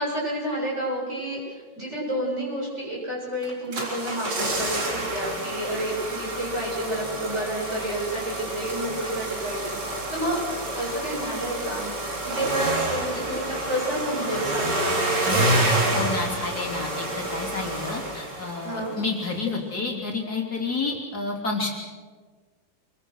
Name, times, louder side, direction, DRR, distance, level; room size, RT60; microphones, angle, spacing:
voice 1, 0.0-15.6 18.6-18.9, right 1 dB, 35° right, -4 dB, 8.3 m, -30 dB
sound 1, 3.4-18.9 19.2-19.3, right 1 dB, 65° right, 4.4 m, -28 dB
voice 2, 15.9-21.7, left 3 dB, 55° left, -1 dB, 3.7 m, -30 dB
27.0 x 22.5 x 6.4 m, 1.5 s
omnidirectional pair, 2.0 m